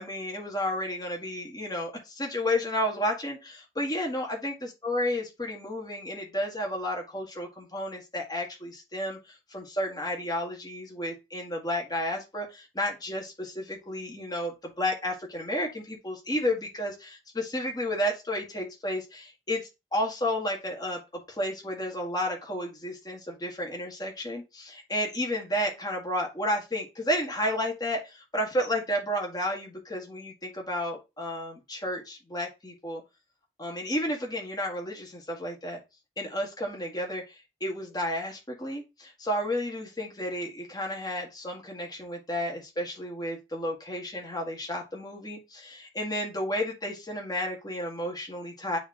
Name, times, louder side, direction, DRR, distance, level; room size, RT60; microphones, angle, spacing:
voice 1, 0.0-4.5 4.8-9.2 9.5-19.6 19.9-21.0 21.4-33.0 33.6-35.8 36.2-37.3 37.6-48.8, left 1 dB, 25° left, 0 dB, 1.7 m, -32 dB
8.6 x 3.0 x 3.7 m, 0.25 s
head